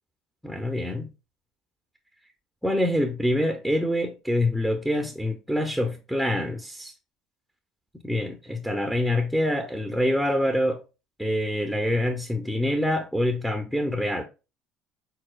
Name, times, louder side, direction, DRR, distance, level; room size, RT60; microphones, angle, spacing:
voice 1, 0.4-1.1 2.6-6.9 8.0-10.8 11.2-14.2, left 1 dB, ahead, 0.7 m, -25 dB
4.6 x 4.2 x 2.3 m
supercardioid pair, 100°, 0 cm